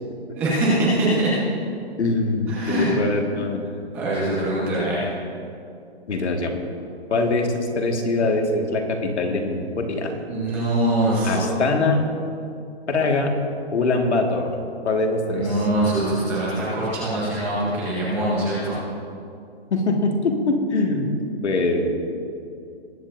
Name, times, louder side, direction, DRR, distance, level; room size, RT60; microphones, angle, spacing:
voice 1, 0.3-1.4 2.5-2.9 3.9-5.0 10.3-11.5 15.3-18.8, right 1 dB, 5° right, -8 dB, 0.9 m, -23 dB
voice 2, 2.0-3.6 6.1-6.5 7.1-10.1 11.2-12.0 12.9-13.3 13.7-14.5 14.8-15.6 19.7-21.1 21.4-22.1, left 2 dB, 80° left, 2 dB, 1.9 m, -23 dB
20.5 x 9.1 x 2.6 m, 2.5 s
hypercardioid pair, 175°, 33 cm